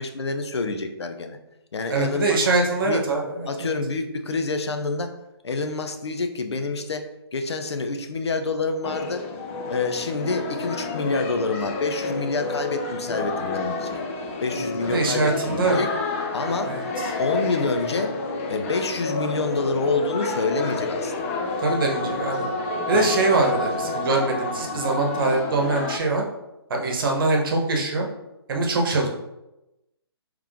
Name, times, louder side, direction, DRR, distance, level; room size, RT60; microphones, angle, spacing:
voice 1, 0.0-1.4 1.7-2.4 2.8-3.0 3.5-5.2 5.4-9.2 9.7-14.0 14.4-15.9 16.3-16.8 17.2-18.2 18.5-21.3 22.9-23.1, left 3 dB, 85° left, 7 dB, 0.6 m, -27 dB
voice 2, 1.9-3.7 14.9-15.8 16.7-17.1 21.6-22.5 22.9-26.2 26.7-28.0 28.5-29.1, right 3 dB, 55° right, 1 dB, 1.0 m, -23 dB
sound 1, 8.8-26.0, left 3 dB, 30° left, 0.5 m, -29 dB
3.5 x 3.2 x 3.6 m, 0.96 s
hypercardioid pair, 150°, 14 cm